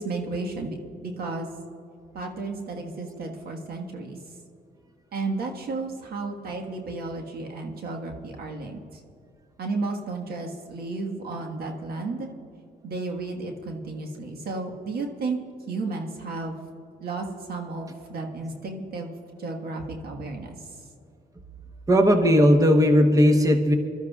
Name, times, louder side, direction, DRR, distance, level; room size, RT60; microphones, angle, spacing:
voice 1, 0.0-1.5 2.1-4.2 5.1-8.8 9.6-12.3 12.8-15.4 15.7-16.6 17.0-19.1 19.4-20.6, right 3 dB, 70° right, 2 dB, 1.6 m, -33 dB
voice 2, 21.9-23.7, equal, 20° right, 5 dB, 1.1 m, -17 dB
24.5 x 13.0 x 2.4 m, 2.6 s
cardioid pair, 75°, 17 cm